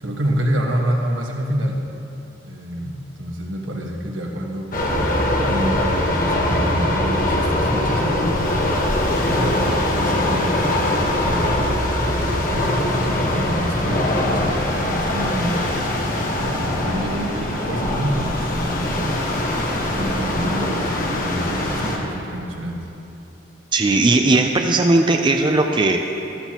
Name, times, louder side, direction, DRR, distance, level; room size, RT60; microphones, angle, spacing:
voice 1, 0.0-1.8 2.4-4.7 5.5-8.6 9.3-9.7 10.0-10.8 11.0-11.7 12.2-15.7 16.4-19.2 19.9-22.9, equal, 85° right, 0 dB, 1.5 m, -27 dB
sound 1, 4.7-22.0, left 1 dB, 45° left, 1.3 m, -22 dB
voice 2, 23.7-26.0, right 2 dB, 25° right, 4 dB, 0.5 m, -17 dB
13.5 x 13.5 x 3.0 m, 2.9 s
head